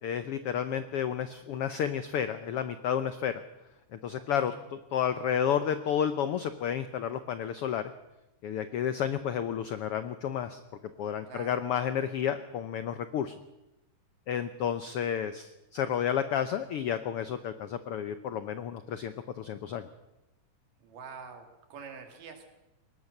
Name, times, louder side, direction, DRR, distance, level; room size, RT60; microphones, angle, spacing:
voice 1, 0.0-3.4 3.9-7.9 8.4-10.6 11.0-13.4 14.3-19.9, left 9 dB, 85° left, 11 dB, 1.2 m, -31 dB
voice 2, 4.1-4.6 11.3-11.9 20.8-22.5, right 5 dB, 85° right, 5 dB, 4.1 m, -47 dB
22.0 x 19.5 x 6.6 m, 0.95 s
omnidirectional pair, 3.7 m